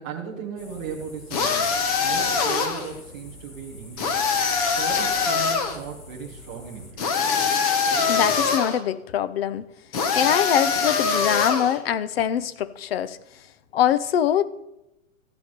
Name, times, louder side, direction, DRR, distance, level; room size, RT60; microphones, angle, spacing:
voice 1, 0.0-4.3 4.7-7.2, right 7 dB, 5° right, -3 dB, 0.4 m, -36 dB
sound 1, 0.6-6.9, left 2 dB, 80° left, 3.5 m, -45 dB
sound 2, 1.3-2.9 4.0-5.8 7.0-8.8 9.9-11.8, left 5 dB, 30° left, 1.0 m, -23 dB
voice 2, 8.1-9.6 10.1-13.2 13.7-14.5, left 10 dB, 50° left, 16 dB, 0.7 m, -23 dB
14.0 x 8.1 x 5.2 m, 0.93 s
hypercardioid pair, 170°, 39 cm